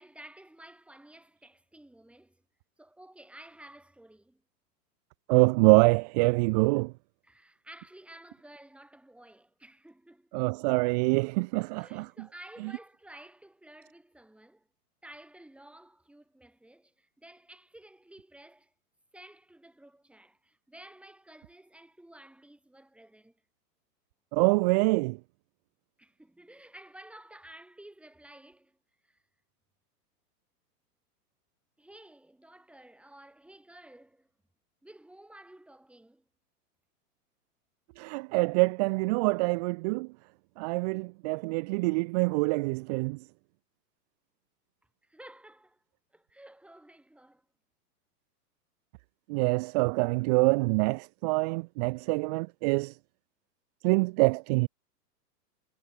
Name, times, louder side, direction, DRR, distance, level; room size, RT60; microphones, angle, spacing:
voice 1, 0.0-2.4 2.8-4.4 7.2-10.5 11.7-14.7 15.0-18.7 19.1-23.4 26.0-28.8 29.0-29.2 31.8-34.3 34.8-36.3 45.0-45.8 46.1-47.4, right 1 dB, ahead, 6.6 m, -53 dB
voice 2, 5.3-6.9 10.3-12.1 24.3-25.2 38.0-40.1 40.6-43.2 49.3-53.0 53.8-54.7, right 27 dB, 25° right, 0.6 m, -25 dB
hypercardioid pair, 145°, 48 cm